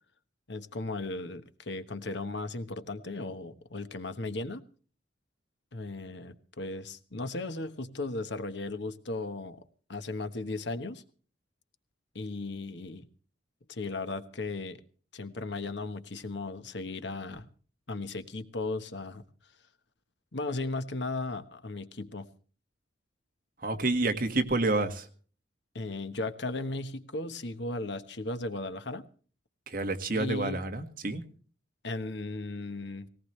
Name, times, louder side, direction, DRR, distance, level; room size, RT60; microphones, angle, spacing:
voice 1, 0.5-4.6 5.7-9.6 9.9-11.0 12.1-13.0 13.7-14.8 15.1-17.4 17.9-19.2 20.3-22.3 25.7-29.1 30.1-30.6 31.8-33.1, left 2 dB, 65° left, 10 dB, 1.2 m, -36 dB
voice 2, 23.6-25.1 29.7-31.2, right 2 dB, 45° right, 6 dB, 1.7 m, -29 dB
19.0 x 18.5 x 3.2 m, 0.42 s
head